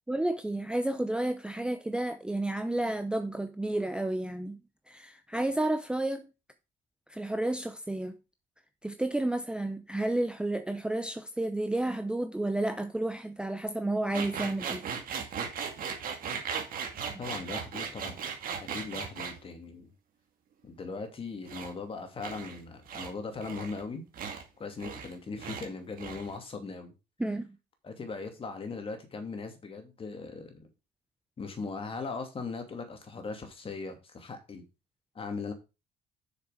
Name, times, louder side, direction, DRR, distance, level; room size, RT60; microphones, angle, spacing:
voice 1, 0.1-4.6 4.9-6.2 7.1-8.1 8.8-14.9 27.2-27.6, right 1 dB, 5° right, 0.7 m, -31 dB
sound 1, 14.1-19.4 21.5-21.7 22.2-22.6 22.9-23.1 23.4-23.8 24.1-24.4 24.8-25.1 25.4-25.7 25.9-26.4, right 6 dB, 55° right, 2.3 m, -37 dB
voice 2, 17.2-18.2 18.7-19.9 20.6-24.0 24.6-26.9 27.8-30.7 31.4-34.6 35.1-35.5, left 4 dB, 35° left, 2.5 m, -39 dB
6.9 x 6.7 x 5.1 m
cardioid pair, 110°, 17 cm